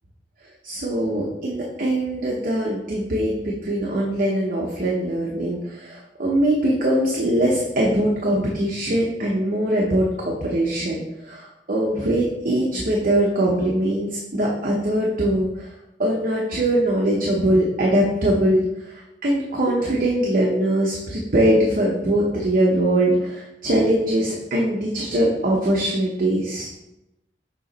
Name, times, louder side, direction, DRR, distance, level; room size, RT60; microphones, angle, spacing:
voice 1, 0.6-15.7 16.0-26.7, right 1 dB, 50° right, -2 dB, 0.8 m, -22 dB
6.9 x 2.9 x 5.2 m, 0.95 s
head